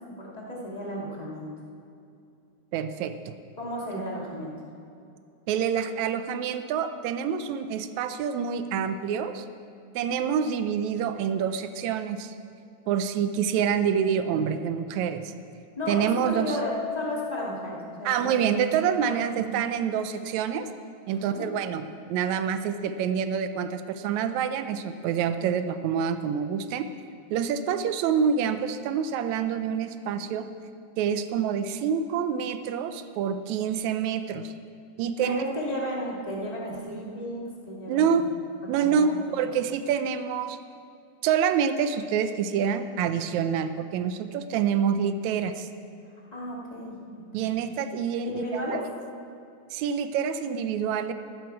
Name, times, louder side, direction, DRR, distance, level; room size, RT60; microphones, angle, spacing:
voice 1, 0.1-1.5 3.6-4.5 15.8-18.6 19.0-19.4 21.1-21.5 35.2-38.3 38.8-39.2 39.4-39.5 46.3-47.0 48.2-48.8, equal, 15° left, -4 dB, 1.8 m, -34 dB
voice 2, 2.7-3.4 3.9-4.0 5.5-9.5 10.0-12.4 12.9-15.3 15.9-16.6 18.1-20.7 21.1-26.9 27.3-30.5 31.0-34.5 35.0-35.4 37.9-38.3 38.7-40.6 41.2-45.7 47.3-48.6 49.7-51.1, right 7 dB, 75° right, 10 dB, 1.8 m, -27 dB
Keyboard (musical), 16.5-19.0, left 7 dB, 70° left, 3.7 m, -39 dB
14.0 x 12.5 x 4.7 m, 2.6 s
omnidirectional pair, 3.5 m